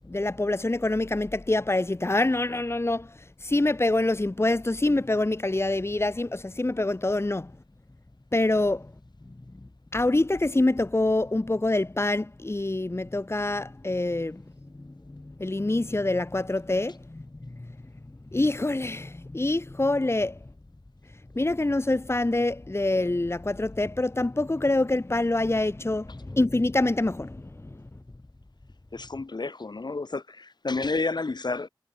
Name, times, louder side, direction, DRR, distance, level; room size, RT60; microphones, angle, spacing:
voice 1, 0.1-7.5 8.3-8.9 9.9-14.4 14.8-17.3 17.6-17.7 18.3-20.4 21.4-27.8, left 2 dB, 30° left, 1.9 m, -26 dB
voice 2, 28.9-31.7, left 3 dB, 60° left, 4.0 m, -30 dB
wide cardioid pair, 55°, 8 cm